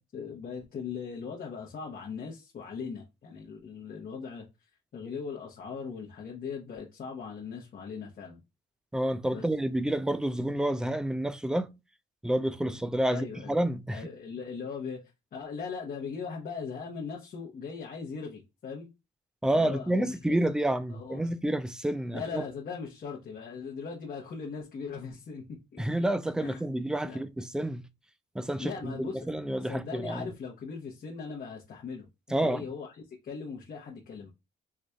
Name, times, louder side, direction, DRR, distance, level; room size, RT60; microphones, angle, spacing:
voice 1, 0.1-4.4 4.9-8.4 9.3-9.4 12.6-12.8 13.1-13.5 13.9-18.9 19.5-20.4 20.9-21.3 22.1-25.4 25.7-26.1 26.4-26.6 27.0-27.2 28.6-29.3 29.6-34.3, left 5 dB, 45° left, 0.9 m, -39 dB
voice 2, 8.9-11.8 12.2-14.0 19.4-22.4 25.8-27.8 28.3-30.3 32.3-32.6, right 1 dB, 5° right, 0.3 m, -29 dB
4.6 x 2.5 x 2.2 m
cardioid pair, 90°, 20 cm